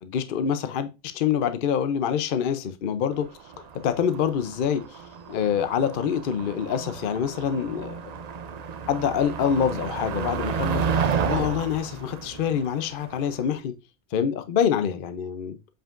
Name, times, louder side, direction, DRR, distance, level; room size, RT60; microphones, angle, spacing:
voice 1, 0.0-3.3 3.8-5.0 5.3-8.1 8.9-13.7 14.1-15.6, left 8 dB, 55° left, 0.6 m, -26 dB
Motor vehicle (road), 3.2-13.5, right 6 dB, 65° right, 0.4 m, -31 dB
7.4 x 5.2 x 2.5 m
omnidirectional pair, 1.3 m